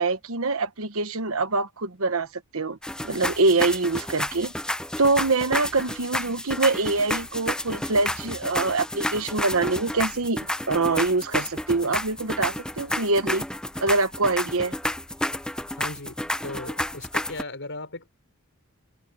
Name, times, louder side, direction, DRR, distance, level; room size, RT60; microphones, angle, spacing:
voice 1, 0.0-2.3 2.5-2.8 3.0-4.5 5.0-10.4 10.7-13.4 13.8-14.7, right 3 dB, 70° right, 1.2 m, -24 dB
sound 1, 2.8-17.4, left 1 dB, 5° left, 0.8 m, -31 dB
voice 2, 15.7-18.2, left 2 dB, 60° left, 6.2 m, -37 dB
head